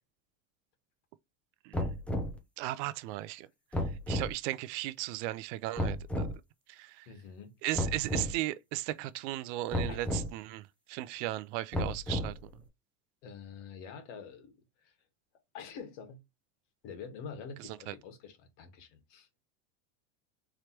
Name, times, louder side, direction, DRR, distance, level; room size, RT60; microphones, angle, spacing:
sound 1, 1.7-2.4 3.7-4.3 5.8-6.3 7.7-8.3 9.7-10.3 11.7-12.5, left 1 dB, 5° left, 0.5 m, -32 dB
voice 1, 2.6-6.3 6.7-7.1 7.6-12.6 17.6-17.9, right 16 dB, 65° right, 0.5 m, -37 dB
voice 2, 7.1-7.5 9.9-10.0 13.2-14.5 14.8-14.9 15.5-16.2 16.8-19.3, left 6 dB, 70° left, 1.5 m, -46 dB
4.8 x 3.2 x 2.9 m
supercardioid pair, 150°, 38 cm